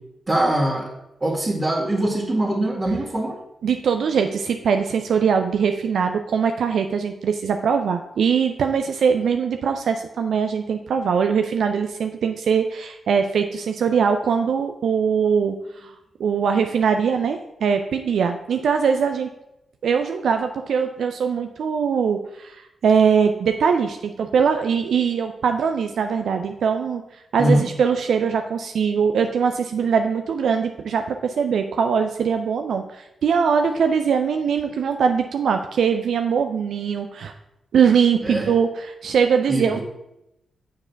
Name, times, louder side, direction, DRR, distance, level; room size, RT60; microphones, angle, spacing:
voice 1, 0.3-0.9 1.2-3.3 27.4-27.7 38.2-38.5 39.5-39.8, right 1 dB, 35° right, -6 dB, 2.1 m, -22 dB
voice 2, 3.6-15.5 15.8-15.9 16.2-19.3 19.8-27.0 27.3-37.3 37.7-39.8, right 6 dB, 75° right, 6 dB, 0.4 m, -21 dB
6.7 x 4.8 x 5.7 m, 0.87 s
supercardioid pair, 45°, 0 cm